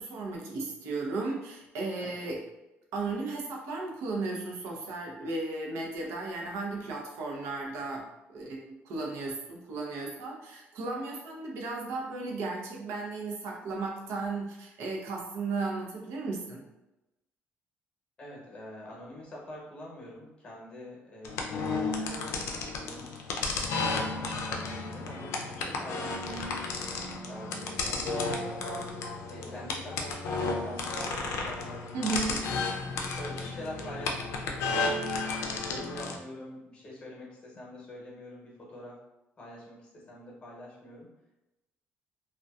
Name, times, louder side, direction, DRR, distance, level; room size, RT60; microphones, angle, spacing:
voice 1, 0.0-2.4 2.9-16.6 31.9-32.6, right 3 dB, 85° right, -1 dB, 0.6 m, -35 dB
voice 2, 18.2-23.1 23.5-26.4 27.2-28.6 29.3-32.2 33.0-35.0 35.5-39.0 39.4-41.1, left 1 dB, 25° left, -4 dB, 0.9 m, -45 dB
sound 1, 21.2-36.2, left 3 dB, 85° left, 0.4 m, -33 dB
2.5 x 2.2 x 2.3 m, 0.96 s
cardioid pair, 135°, 5 cm